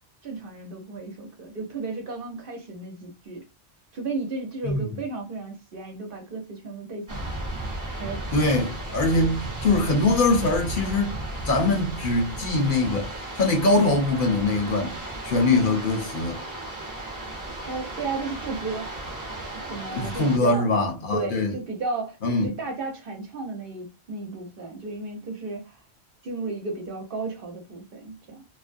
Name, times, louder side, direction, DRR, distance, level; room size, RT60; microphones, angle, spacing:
voice 1, 0.2-3.4 3.9-7.3 8.0-8.5 17.6-18.9 19.5-20.7 21.1-22.2 22.4-25.8 26.2-28.4, right 3 dB, 60° right, 0.9 m, -34 dB
sound 1, 7.1-20.4, right 1 dB, 20° right, 0.7 m, -35 dB
voice 2, 8.3-11.2 11.4-13.1 13.4-14.9 15.2-16.4 19.9-21.6 22.2-22.5, left 2 dB, 60° left, 0.8 m, -22 dB
2.5 x 2.0 x 2.4 m
omnidirectional pair, 1.1 m